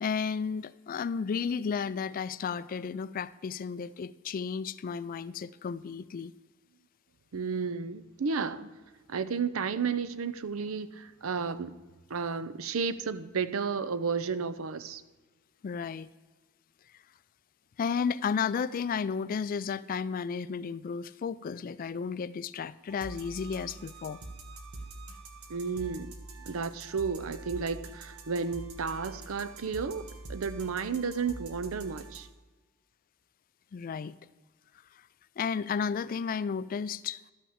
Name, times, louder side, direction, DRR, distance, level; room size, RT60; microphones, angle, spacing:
voice 1, 0.0-6.3 15.6-16.1 17.8-24.2 33.7-34.2 34.9-35.0 35.4-37.2, left 6 dB, 40° left, 0.3 m, -33 dB
voice 2, 7.3-8.7 9.1-11.8 12.1-15.0 25.5-26.1 26.5-32.3, right 5 dB, 70° right, 0.6 m, -32 dB
sound 1, 22.9-32.3, right 2 dB, 90° right, 1.3 m, -45 dB
12.0 x 5.9 x 7.2 m
head